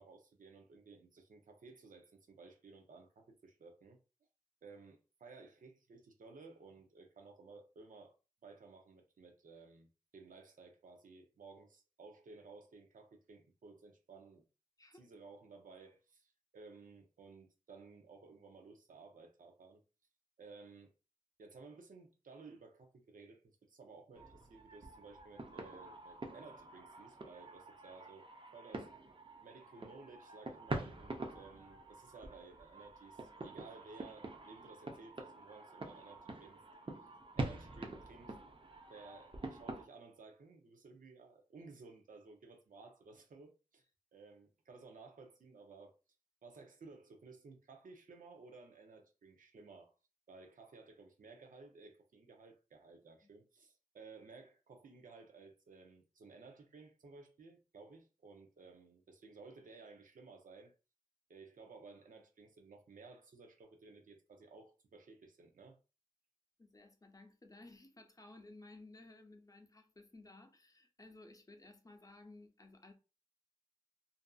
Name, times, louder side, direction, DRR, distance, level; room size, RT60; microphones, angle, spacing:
voice 1, 0.0-4.0 4.6-8.1 8.4-14.4 14.9-19.8 20.4-20.9 21.4-28.9 29.4-36.6 37.4-38.3 38.9-43.8 44.1-45.9 46.4-49.9 50.3-60.7 61.3-65.8, right 4 dB, 85° right, 0.5 m, -56 dB
voice 2, 14.8-15.1 53.2-53.3 66.6-72.9, left 2 dB, 25° left, 0.6 m, -57 dB
sound 1, 24.1-39.8, right 2 dB, 40° right, 0.6 m, -46 dB
2.6 x 2.5 x 2.3 m
cardioid pair, 45°, 13 cm